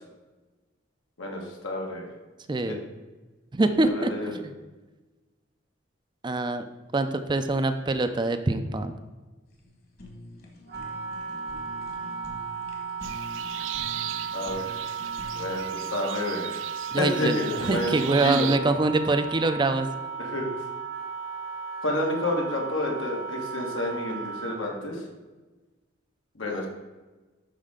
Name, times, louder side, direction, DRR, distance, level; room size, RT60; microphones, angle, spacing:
voice 1, 1.2-2.0 3.8-4.4 14.3-14.8 15.3-16.6 17.0-18.5 20.2-20.5 21.8-25.0 26.4-26.7, left 1 dB, 85° left, -1 dB, 1.9 m, -30 dB
voice 2, 2.5-2.8 3.5-4.5 6.2-6.6 6.9-8.9 16.9-17.4 17.6-19.9, right 2 dB, 25° right, 9 dB, 0.5 m, -24 dB
Fire, 9.5-15.8, left 1 dB, 50° left, 1.8 m, -45 dB
Wind instrument woodwind instrument, 10.7-24.8, right 6 dB, 60° right, 1.0 m, -35 dB
sound 1, 13.0-18.6, right 12 dB, 80° right, 0.4 m, -37 dB
11.5 x 4.4 x 3.7 m, 1.2 s
head